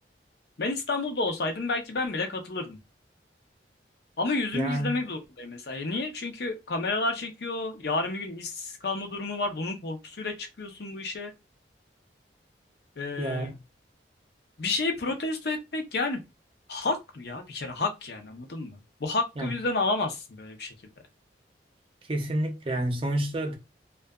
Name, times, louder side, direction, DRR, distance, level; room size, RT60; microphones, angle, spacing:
voice 1, 0.6-2.8 4.2-11.3 13.0-13.5 14.6-16.2 16.7-20.7, left 3 dB, 60° left, 0.6 m, -30 dB
voice 2, 4.5-5.0 13.2-13.6 19.4-19.5 22.1-23.6, right 1 dB, 30° right, 0.5 m, -29 dB
2.7 x 2.3 x 2.3 m
head